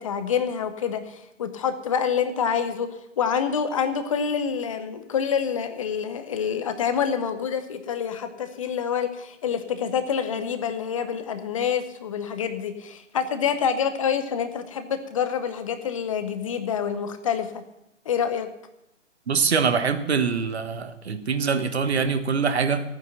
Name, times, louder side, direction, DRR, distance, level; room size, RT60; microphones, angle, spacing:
voice 1, 0.0-2.9 3.2-17.6 18.1-18.5, left 7 dB, 25° left, 9 dB, 0.8 m, -27 dB
voice 2, 19.3-22.8, right 5 dB, 55° right, 9 dB, 1.4 m, -24 dB
14.0 x 9.5 x 5.9 m, 0.86 s
figure-of-eight pair, 140°, 37 cm